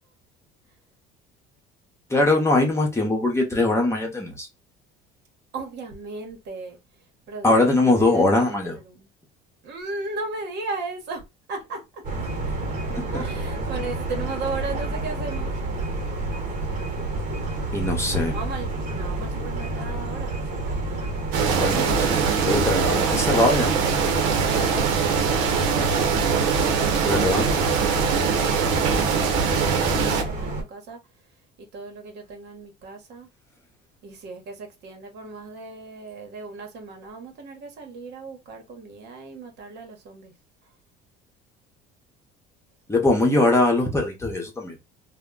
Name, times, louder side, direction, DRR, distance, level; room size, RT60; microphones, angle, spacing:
voice 1, 2.1-4.5 7.4-8.8 12.9-13.2 17.7-18.3 21.6-23.7 27.0-27.5 42.9-44.7, left 2 dB, 15° left, 0.9 m, -21 dB
voice 2, 5.5-6.8 7.3-9.1 9.6-11.2 11.5-12.3 13.1-15.5 18.3-20.3 28.0-31.0 31.6-33.3 34.0-40.3, right 3 dB, 60° right, 1.0 m, -36 dB
sound 1, 12.0-30.6, right 2 dB, 45° right, 1.1 m, -29 dB
sound 2, 21.3-30.2, right 6 dB, 85° right, 0.7 m, -22 dB
2.2 x 2.1 x 3.7 m
supercardioid pair, 105°, 20 cm